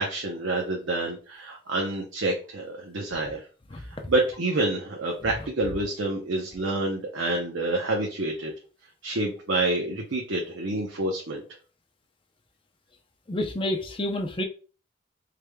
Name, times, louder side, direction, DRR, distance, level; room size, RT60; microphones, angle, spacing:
voice 1, 0.0-3.4 4.1-8.5 9.0-11.4, right 2 dB, 75° right, 0.7 m, -28 dB
voice 2, 13.3-14.4, left 1 dB, 25° left, 0.6 m, -29 dB
4.8 x 3.3 x 2.2 m
head